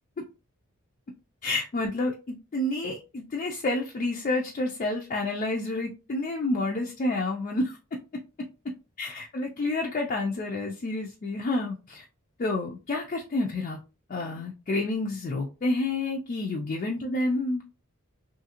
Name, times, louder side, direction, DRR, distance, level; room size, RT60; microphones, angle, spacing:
voice 1, 1.4-7.8 9.0-12.1 12.4-13.8 14.1-17.6, left 2 dB, 35° left, 0 dB, 0.3 m, -29 dB
2.8 x 2.4 x 2.7 m, 0.32 s
head